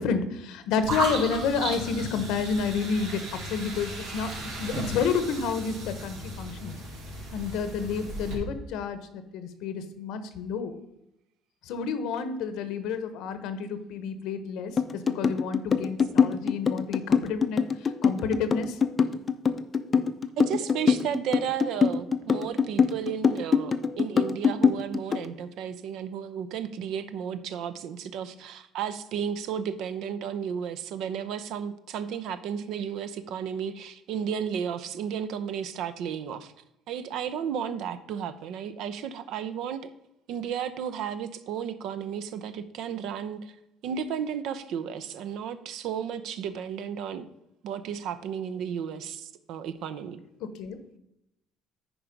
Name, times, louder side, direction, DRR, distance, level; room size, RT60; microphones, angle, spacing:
voice 1, 0.0-6.7 7.3-10.7 11.6-18.8 50.4-51.0, left 5 dB, 75° left, 11 dB, 0.9 m, -30 dB
sound 1, 0.8-8.3, right 2 dB, 90° right, 3.5 m, -35 dB
sound 2, 14.8-25.3, left 6 dB, 30° left, 0.5 m, -23 dB
voice 2, 20.4-36.5 36.9-39.9 40.3-43.5 43.8-47.3 47.6-50.2, right 8 dB, 65° right, 12 dB, 0.6 m, -33 dB
10.0 x 4.6 x 5.1 m, 0.85 s
cardioid pair, 140°, 0 cm